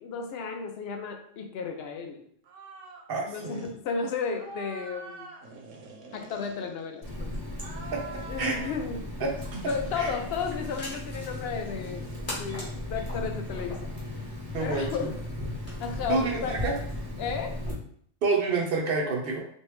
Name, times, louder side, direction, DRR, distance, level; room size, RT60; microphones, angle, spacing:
voice 1, 0.0-2.2 3.2-5.3 6.1-7.3 8.3-9.0 9.7-12.1 12.4-13.9 14.6-15.2 15.8-16.6 17.2-17.6, left 5 dB, 65° left, 4 dB, 0.7 m, -33 dB
sound 1, 2.4-3.1 3.3-3.7 4.3-7.1 7.5-8.9 9.4-10.5 11.5-13.3, right 3 dB, 75° right, 1.0 m, -46 dB
voice 2, 3.1-3.6 7.9-8.6 9.2-9.3 10.0-10.1 14.5-15.1 16.1-16.7 18.2-19.4, right 3 dB, 60° right, 0 dB, 0.7 m, -28 dB
Water tap faucet, 7.0-17.7, left 1 dB, 20° right, 0.7 m, -36 dB
sound 2, 9.3-16.9, left 1 dB, 30° left, 1.1 m, -45 dB
3.1 x 2.6 x 3.1 m, 0.63 s
omnidirectional pair, 1.3 m